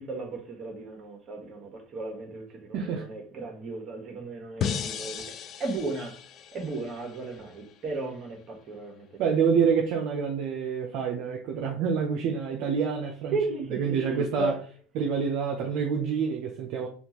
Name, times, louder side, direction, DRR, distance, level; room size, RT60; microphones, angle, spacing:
voice 1, 0.0-5.3 5.6-6.2 6.5-9.2 13.3-14.6, right 3 dB, 40° right, 1.2 m, -35 dB
voice 2, 2.7-3.1 9.2-13.4 13.7-14.5 15.0-16.9, right 6 dB, 65° right, 0.6 m, -27 dB
sound 1, 4.6-7.7, left 8 dB, 45° left, 0.3 m, -35 dB
3.5 x 2.4 x 2.9 m
supercardioid pair, 115°, 0 cm